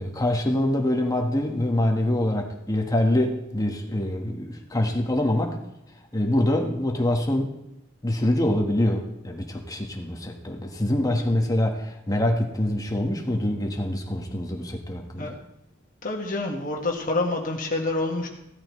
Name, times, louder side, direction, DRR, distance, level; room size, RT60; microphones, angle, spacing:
voice 1, 0.0-5.6 6.1-7.5 8.0-15.4, left 1 dB, 20° left, 2 dB, 1.4 m, -25 dB
voice 2, 16.0-18.3, left 2 dB, 45° left, 1 dB, 1.7 m, -27 dB
16.0 x 13.0 x 3.2 m, 0.88 s
head